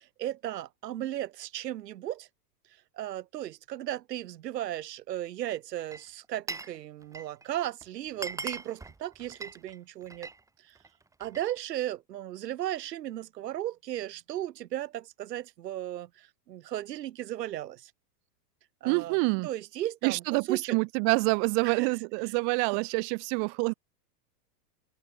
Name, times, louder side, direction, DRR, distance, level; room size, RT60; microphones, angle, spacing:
voice 1, 0.0-2.3 3.0-10.3 10.7-10.8 11.2-17.9 18.8-19.2 19.4-20.8 21.6-21.9 22.2-22.3 22.6-22.8, right 13 dB, 80° right, 4.5 m, -36 dB
Glass, 5.8-6.8 7.0-7.4 7.8-7.9 8.1-10.4 10.8-11.5, right 3 dB, 5° right, 2.2 m, -40 dB
voice 2, 18.8-19.5 20.0-23.7, right 40 dB or more, 40° right, 2.5 m, -27 dB
open air
supercardioid pair, 155°, 48 cm